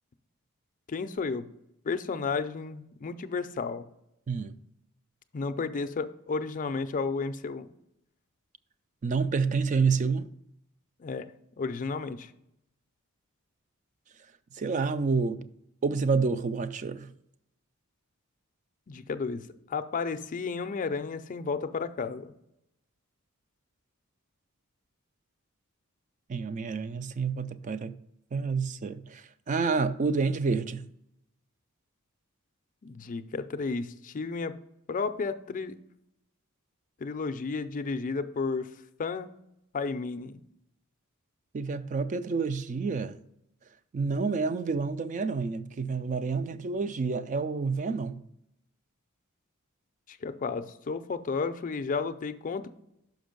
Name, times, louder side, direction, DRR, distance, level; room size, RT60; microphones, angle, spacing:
voice 1, 0.9-1.5 1.8-3.8 5.3-7.7 11.0-11.3 11.6-12.3 18.9-22.3 32.8-34.5 34.9-35.8 37.0-38.7 39.0-39.3 39.7-40.4 50.1-52.7, left 4 dB, 40° left, 0.4 m, -32 dB
voice 2, 9.0-10.3 14.5-15.5 15.8-17.1 26.3-28.0 28.3-30.9 41.5-43.2 43.9-48.2, right 4 dB, 35° right, 0.3 m, -29 dB
6.1 x 5.2 x 5.1 m
head